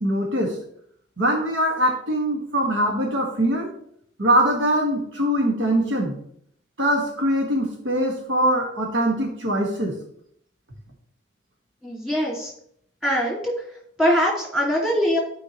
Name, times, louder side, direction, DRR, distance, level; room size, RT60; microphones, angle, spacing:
voice 1, 0.0-0.6 1.2-3.7 4.2-6.2 6.8-10.0, right 1 dB, 80° right, 1 dB, 1.8 m, -22 dB
voice 2, 11.8-12.5 13.0-13.5 14.0-15.2, equal, 5° right, -3 dB, 2.4 m, -22 dB
12.5 x 5.1 x 3.1 m, 0.68 s
head